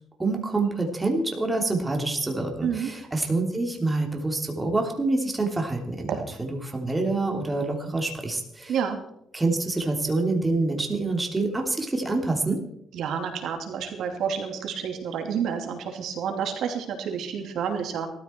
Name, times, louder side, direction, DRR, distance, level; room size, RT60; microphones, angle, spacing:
voice 1, 0.2-6.1 6.4-8.8 9.3-12.6, right 2 dB, 15° right, 2 dB, 3.2 m, -26 dB
voice 2, 8.7-9.0 12.9-18.1, right 7 dB, 75° right, 4 dB, 2.7 m, -29 dB
18.5 x 13.5 x 4.6 m, 0.76 s
cardioid pair, 90°, 0 cm